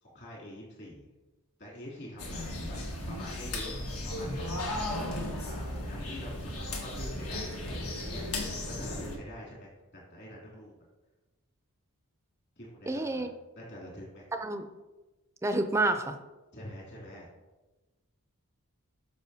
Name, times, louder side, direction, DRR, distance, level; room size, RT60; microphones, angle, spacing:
voice 1, 0.0-1.1 1.6-2.8 3.1-3.7 4.0-4.4 5.4-10.7 12.6-13.3 13.6-14.3 16.5-17.3, left 1 dB, 50° left, -4 dB, 2.9 m, -46 dB
sound 1, 2.2-9.2, left 1 dB, 75° left, 1.5 m, -35 dB
voice 2, 12.9-13.3 14.3-14.7 15.4-16.2, right 2 dB, 10° right, 7 dB, 0.5 m, -29 dB
12.5 x 5.6 x 2.8 m, 1.1 s
head